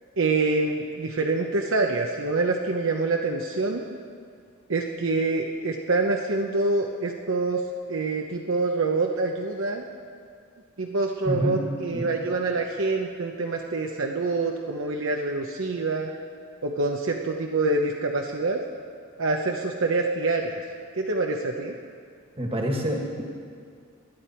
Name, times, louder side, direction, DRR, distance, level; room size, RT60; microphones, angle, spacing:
voice 1, 0.2-3.8 4.7-7.6 7.9-9.9 10.8-16.1 16.6-18.6 19.2-20.6 21.0-21.7, right 3 dB, 60° right, 2 dB, 0.8 m, -26 dB
voice 2, 11.3-11.6 11.9-12.1 22.4-23.2, equal, 25° right, 1 dB, 1.7 m, -27 dB
20.0 x 11.0 x 4.4 m, 2.2 s
head